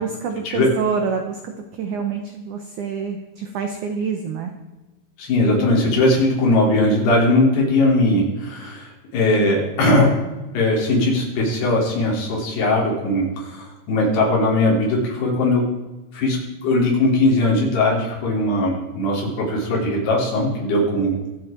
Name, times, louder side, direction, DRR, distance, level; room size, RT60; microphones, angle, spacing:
voice 1, 0.0-4.5, right 5 dB, 80° right, 5 dB, 1.7 m, -27 dB
voice 2, 5.2-10.2 10.5-15.6 16.1-21.2, left 2 dB, 70° left, -2 dB, 5.5 m, -19 dB
24.0 x 8.2 x 4.5 m, 1.1 s
omnidirectional pair, 5.0 m